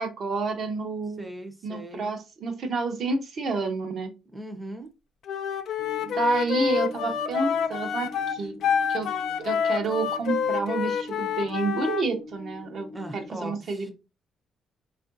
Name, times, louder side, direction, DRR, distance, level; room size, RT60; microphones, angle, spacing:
voice 1, 0.0-1.3 1.6-4.1 6.0-8.5 8.9-9.1 9.4-13.9, right 3 dB, 60° right, 0.8 m, -29 dB
voice 2, 1.2-2.1 4.3-5.0 12.9-13.9, right 1 dB, 10° right, 0.6 m, -39 dB
Wind instrument woodwind instrument, 5.3-12.1, left 7 dB, 70° left, 0.4 m, -28 dB
sound 1, 5.8-13.3, left 2 dB, 50° left, 0.8 m, -43 dB
3.5 x 2.5 x 2.6 m
cardioid pair, 90°, 0 cm